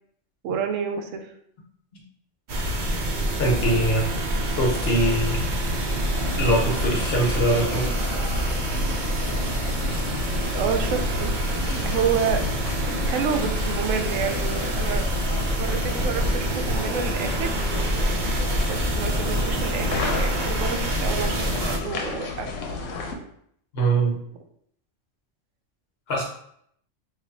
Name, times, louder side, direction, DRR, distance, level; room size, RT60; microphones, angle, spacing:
voice 1, 0.4-1.3 10.5-12.5 13.0-15.1 15.5-17.6 18.7-22.5, right 7 dB, 90° right, 5 dB, 1.0 m, -29 dB
sound 1, 2.5-21.8, right 1 dB, 50° right, 0.6 m, -26 dB
voice 2, 3.4-4.1 4.6-5.4 6.3-7.9 23.7-24.1 26.1-26.2, right 1 dB, 55° left, -1 dB, 1.1 m, -22 dB
sound 2, 6.2-23.2, left 3 dB, 85° left, 1.0 m, -33 dB
3.2 x 2.4 x 3.9 m, 0.69 s
omnidirectional pair, 1.3 m